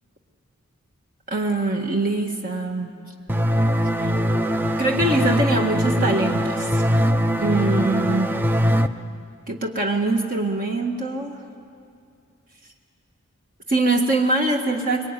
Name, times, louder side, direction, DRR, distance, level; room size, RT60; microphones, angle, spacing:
voice 1, 1.3-2.9 4.0-4.1 4.8-6.8 7.4-8.3 9.5-11.4 13.7-15.1, right 2 dB, 40° right, 1 dB, 1.7 m, -23 dB
sound 1, 3.3-8.9, equal, 10° right, 0.7 m, -21 dB
25.5 x 23.0 x 9.9 m, 2.5 s
head